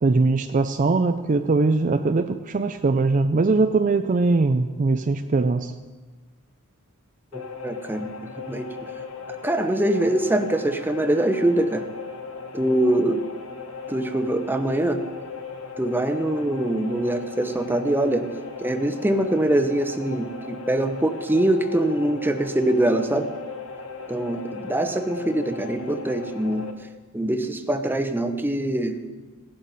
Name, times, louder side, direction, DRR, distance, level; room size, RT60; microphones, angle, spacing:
voice 1, 0.0-5.7, right 3 dB, 40° right, 8 dB, 0.4 m, -21 dB
sound 1, 7.3-26.7, left 4 dB, 70° left, 1.2 m, -37 dB
voice 2, 7.3-8.1 8.4-8.7 9.4-11.8 12.5-13.2 13.9-15.0 15.8-18.3 18.6-23.3 24.1-26.7 27.1-29.0, right 1 dB, 10° right, 6 dB, 0.8 m, -23 dB
17.0 x 11.5 x 4.1 m, 1.3 s
head